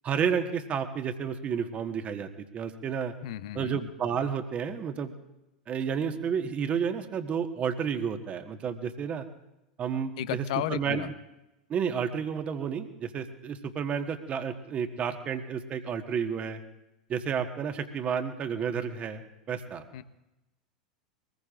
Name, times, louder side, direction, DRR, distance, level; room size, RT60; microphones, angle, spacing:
voice 1, 0.0-3.1 3.5-5.1 5.7-9.3 9.8-11.1 11.7-16.6 17.1-19.8, right 7 dB, 30° right, 6 dB, 1.5 m, -31 dB
voice 2, 3.2-3.8 10.2-11.1 19.9-20.0, left 13 dB, 55° left, 14 dB, 0.8 m, -33 dB
23.5 x 20.0 x 2.6 m, 0.95 s
figure-of-eight pair, 85°, 4 cm